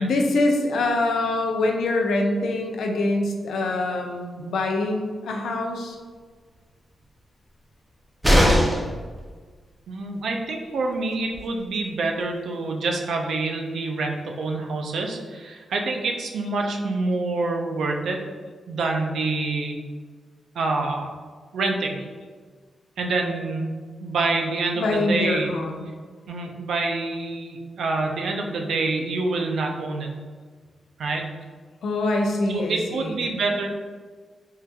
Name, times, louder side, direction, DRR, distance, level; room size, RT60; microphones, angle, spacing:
voice 1, 0.0-6.0 24.8-25.9 31.8-33.2, left 2 dB, 85° left, 2 dB, 0.4 m, -24 dB
sound 1, 8.2-9.0 10.9-11.0 11.3-11.4, equal, 5° right, 0.4 m, -18 dB
voice 2, 9.9-18.2 18.7-19.8 20.6-21.1 21.5-22.0 23.0-23.7 24.0-25.5 26.3-30.1 31.0-31.2 32.5-33.7, right 3 dB, 75° right, 2 dB, 0.4 m, -26 dB
3.6 x 2.7 x 2.2 m, 1.5 s
wide cardioid pair, 160°, 0 cm